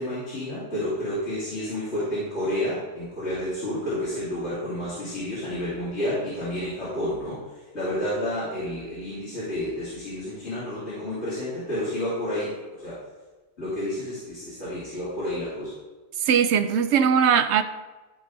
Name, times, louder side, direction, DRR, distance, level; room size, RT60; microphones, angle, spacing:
voice 1, 0.0-7.4 7.7-13.0 13.6-15.7, left 1 dB, 70° left, -11 dB, 3.5 m, -30 dB
voice 2, 16.2-17.6, right 7 dB, 75° right, 11 dB, 0.9 m, -20 dB
14.0 x 4.8 x 4.0 m, 1.2 s
omnidirectional pair, 1.2 m